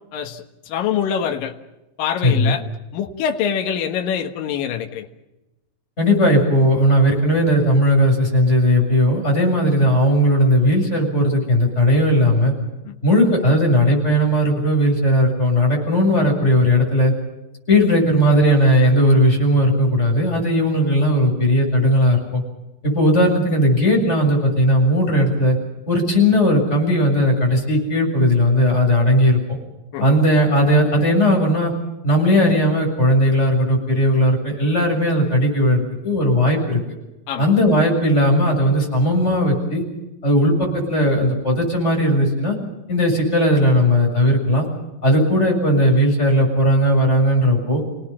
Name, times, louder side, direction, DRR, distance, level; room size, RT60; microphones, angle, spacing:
voice 1, 0.1-1.5 2.0-2.6 2.9-5.1 12.9-13.0 29.9-30.2 37.3-37.5, left 8 dB, 75° left, 4 dB, 3.1 m, -25 dB
voice 2, 2.2-2.5 6.0-12.5 13.0-17.1 17.7-22.4 22.8-25.6 25.9-29.4 30.0-31.7 32.0-36.8 37.4-39.8 40.2-42.6 42.9-44.7 45.0-47.8, equal, 20° left, 0 dB, 7.3 m, -17 dB
29.5 x 18.5 x 7.3 m, 0.99 s
omnidirectional pair, 4.0 m